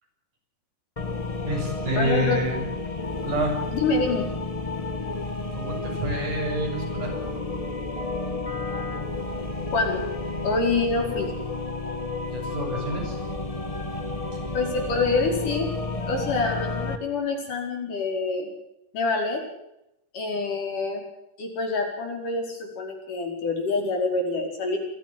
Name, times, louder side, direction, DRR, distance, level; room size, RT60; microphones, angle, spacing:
sound 1, 1.0-17.0, left 3 dB, 20° left, 1.0 m, -31 dB
voice 1, 1.5-2.6 3.2-3.6 5.5-7.2 12.3-13.2, right 1 dB, 75° right, 0 dB, 9.2 m, -28 dB
voice 2, 2.0-2.5 3.7-4.3 9.7-10.0 10.4-11.3 14.5-15.7 16.1-18.5 18.9-19.4 20.1-21.0 21.4-24.8, left 3 dB, 80° left, 2 dB, 6.6 m, -26 dB
25.0 x 15.0 x 7.8 m, 0.85 s
omnidirectional pair, 3.6 m